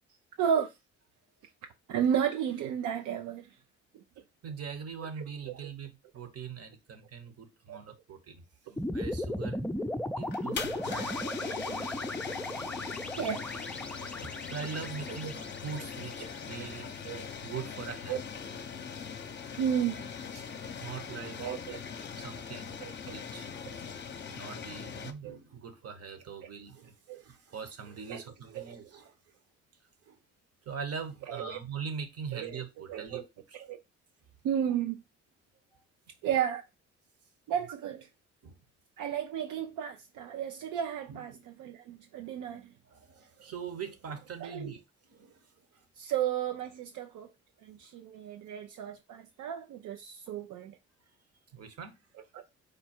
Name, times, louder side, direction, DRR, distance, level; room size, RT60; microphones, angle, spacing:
voice 1, 0.4-0.7 1.9-3.5 3.9-4.0 7.7-7.8 13.2-13.5 17.1-17.2 18.1-18.2 19.6-20.0 21.4-21.8 22.8-22.9 23.7-23.8 25.2-25.4 27.1-27.2 28.1-28.2 28.5-28.7 31.3-31.6 32.3-32.6 32.9-33.2 33.7-33.8 34.4-35.0 36.2-36.6 37.5-38.0 39.0-41.3 41.6-42.7 44.4-44.7 46.0-47.3 47.6-50.8 52.3-52.4, right 9 dB, 80° right, 0.6 m, -33 dB
voice 2, 4.4-9.6 10.2-11.9 14.5-16.9 17.4-18.2 20.3-21.5 22.1-23.5 24.3-29.3 30.0-30.2 30.6-33.6 38.4-38.6 41.1-41.4 42.8-45.8 47.7-47.8 51.5-52.0, right 6 dB, 55° right, 1.2 m, -42 dB
sound 1, 8.8-17.1, left 1 dB, 5° left, 0.4 m, -36 dB
sound 2, 10.2-25.1, left 6 dB, 35° left, 0.7 m, -41 dB
5.1 x 2.3 x 4.3 m
cardioid pair, 90°, 30 cm